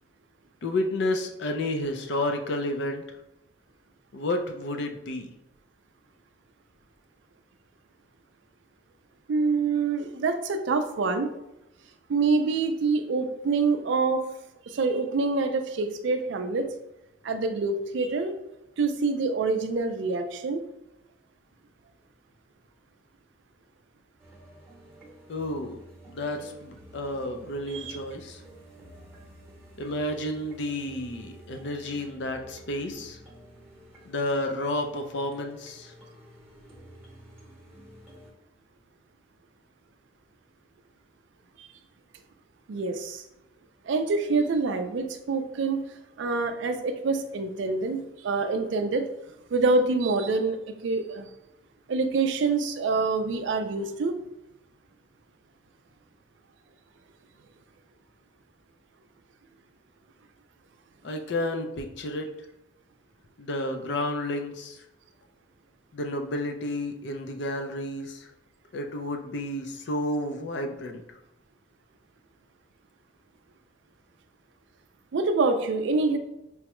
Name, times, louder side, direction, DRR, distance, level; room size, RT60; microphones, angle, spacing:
voice 1, 0.6-3.0 4.1-5.3 25.3-25.8 26.1-28.4 29.8-33.2 34.1-35.9 61.0-62.3 63.4-64.8 65.9-68.3 68.7-71.0, left 1 dB, 55° left, 5 dB, 0.4 m, -31 dB
voice 2, 9.3-11.3 12.1-14.3 14.7-16.7 17.2-18.4 18.8-20.6 27.7-28.0 41.6-41.7 42.7-43.3 43.9-45.8 46.2-49.1 49.5-51.3 51.9-54.2 75.1-76.2, right 3 dB, 60° right, 8 dB, 0.4 m, -26 dB
sound 1, 24.2-38.3, right 1 dB, 10° right, 0.9 m, -50 dB
4.6 x 2.1 x 2.9 m, 0.89 s
head